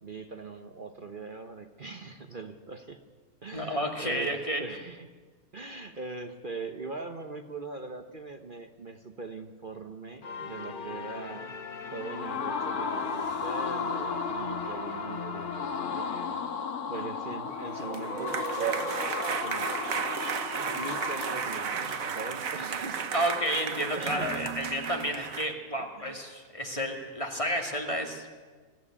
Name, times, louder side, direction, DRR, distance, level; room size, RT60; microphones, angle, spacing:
voice 1, 0.0-3.0 3.4-5.1 5.5-11.5 11.9-16.4 16.8-18.7 19.4-19.7 20.7-23.4 23.9-24.6 25.8-26.2, right 3 dB, 40° right, 6 dB, 1.0 m, -41 dB
voice 2, 3.5-4.6 23.1-28.4, equal, 20° left, 2 dB, 2.3 m, -31 dB
sound 1, 10.2-16.8, left 5 dB, 40° left, 1.0 m, -40 dB
sound 2, 11.8-22.7, left 5 dB, 75° left, 1.9 m, -35 dB
sound 3, 17.6-25.5, right 7 dB, 65° right, 1.4 m, -33 dB
22.5 x 14.0 x 10.0 m, 1.5 s
omnidirectional pair, 1.6 m